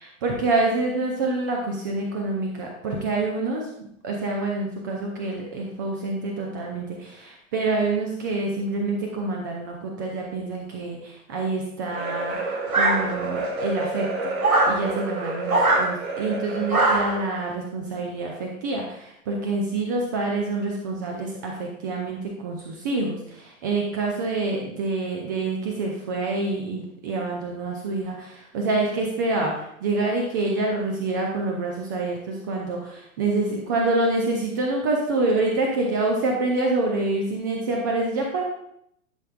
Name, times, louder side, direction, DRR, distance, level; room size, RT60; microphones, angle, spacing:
voice 1, 0.0-14.3 14.7-38.4, right 2 dB, 15° right, 0 dB, 0.4 m, -27 dB
sound 1, 11.9-17.3, right 2 dB, 50° right, 2.2 m, -30 dB
sound 2, 12.7-13.4 14.4-14.8 15.5-15.9 16.7-17.2, right 2 dB, 80° right, 1.3 m, -21 dB
11.0 x 5.5 x 2.4 m, 0.75 s
figure-of-eight pair, 110°, 42 cm